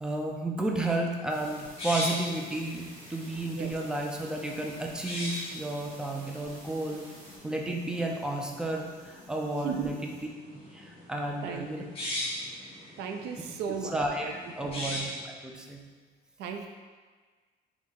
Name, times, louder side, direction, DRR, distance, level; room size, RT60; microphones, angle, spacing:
voice 1, 0.0-7.1 7.4-10.2 10.5-11.8 13.7-15.8, right 2 dB, 5° right, 0 dB, 0.5 m, -32 dB
sound 1, 0.6-15.2, left 1 dB, 35° left, 1.5 m, -41 dB
sound 2, 1.3-10.2, right 1 dB, 45° right, 1.4 m, -52 dB
voice 2, 9.6-9.9 11.4-11.9 13.0-14.4 14.6-14.9 16.4-16.7, right 6 dB, 85° right, 5 dB, 0.5 m, -36 dB
3.6 x 3.0 x 4.2 m, 1.5 s
cardioid pair, 110°, 17 cm